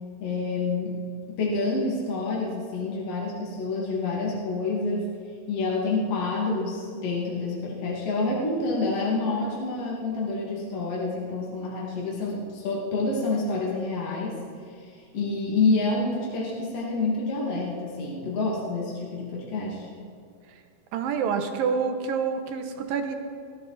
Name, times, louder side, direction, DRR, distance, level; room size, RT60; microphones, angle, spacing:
voice 1, 0.2-1.0 1.3-5.1 5.5-14.4 14.7-19.9, left 3 dB, 45° left, -5 dB, 3.3 m, -28 dB
voice 2, 20.9-23.2, right 6 dB, 90° right, 6 dB, 2.8 m, -27 dB
19.5 x 17.0 x 4.2 m, 2.2 s
omnidirectional pair, 3.9 m